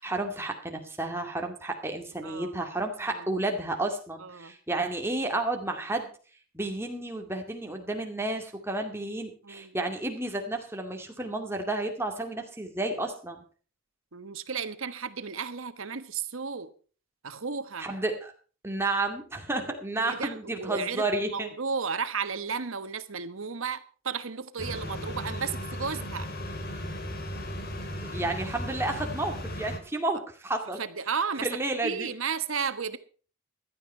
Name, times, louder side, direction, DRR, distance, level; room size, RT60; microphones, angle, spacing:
voice 1, 0.0-6.1 6.5-13.4 17.8-18.3 18.6-21.5 28.1-30.8 31.4-32.1, right 2 dB, 10° right, 2.2 m, -31 dB
voice 2, 2.2-2.6 3.0-3.3 4.2-4.5 9.4-9.8 14.1-16.7 17.2-17.9 19.7-26.3 30.8-31.5 31.8-33.0, right 5 dB, 75° right, 1.2 m, -34 dB
sound 1, 24.6-29.8, equal, 45° left, 2.3 m, -36 dB
16.0 x 12.0 x 4.4 m
head